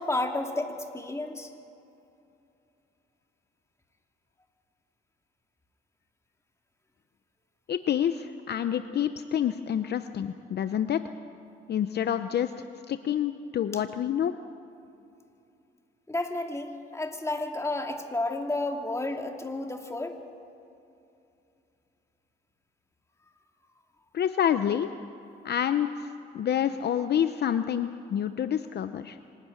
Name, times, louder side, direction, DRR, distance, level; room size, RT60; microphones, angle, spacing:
voice 1, 0.0-1.5 16.1-20.2, left 2 dB, 15° left, 3 dB, 2.4 m, -31 dB
voice 2, 7.7-11.0 11.7-14.4 24.1-24.9 25.4-26.1 26.3-29.2, left 9 dB, 55° left, 10 dB, 0.7 m, -28 dB
25.5 x 12.5 x 9.5 m, 2.7 s
cardioid pair, 90°, 20 cm